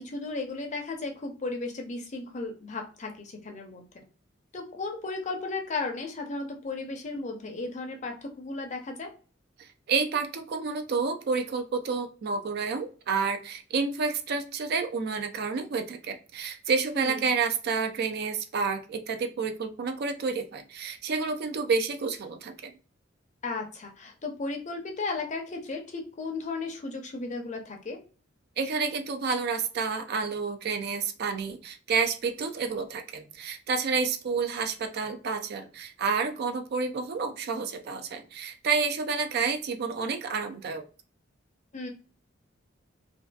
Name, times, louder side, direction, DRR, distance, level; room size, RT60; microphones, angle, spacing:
voice 1, 0.0-3.8 4.5-9.1 16.9-17.2 23.4-28.0 41.7-41.9, left 3 dB, 35° left, 3 dB, 0.5 m, -35 dB
voice 2, 9.6-22.7 28.6-40.8, right 5 dB, 55° right, 7 dB, 0.4 m, -29 dB
2.5 x 2.4 x 2.2 m, 0.37 s
head